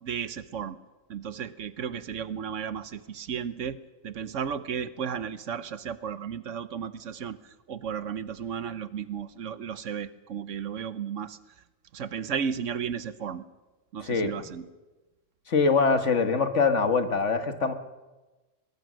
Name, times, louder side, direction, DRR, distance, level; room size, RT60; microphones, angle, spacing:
voice 1, 0.0-0.8 1.1-11.4 11.9-13.4 13.9-14.7, right 7 dB, 70° right, 14 dB, 1.2 m, -34 dB
voice 2, 14.0-14.3 15.5-17.7, left 4 dB, 60° left, 8 dB, 1.7 m, -23 dB
22.0 x 21.5 x 6.3 m, 1.2 s
omnidirectional pair, 1.4 m